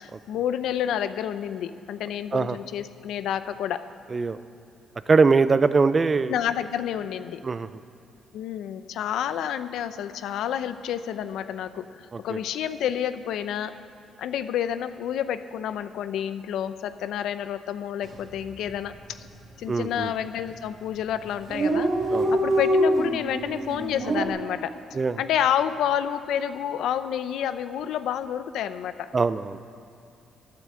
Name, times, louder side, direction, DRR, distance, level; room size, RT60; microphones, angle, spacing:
voice 1, 0.0-3.9 6.3-7.4 8.3-13.8 14.2-18.9 19.6-24.8 25.2-29.1, left 9 dB, 80° left, 12 dB, 0.6 m, -29 dB
voice 2, 5.1-6.3 7.4-7.7 12.1-12.4 19.7-20.1 22.1-22.3 24.9-25.2 29.1-29.6, right 4 dB, 30° right, 14 dB, 0.5 m, -22 dB
Dog, 18.0-18.3 18.6-18.7 18.9-19.6 20.2-20.5 20.8-20.9 21.1-21.2 21.3-24.3, right 1 dB, 50° right, 1.9 m, -24 dB
12.0 x 9.1 x 7.7 m, 2.7 s
cardioid pair, 90°, 0 cm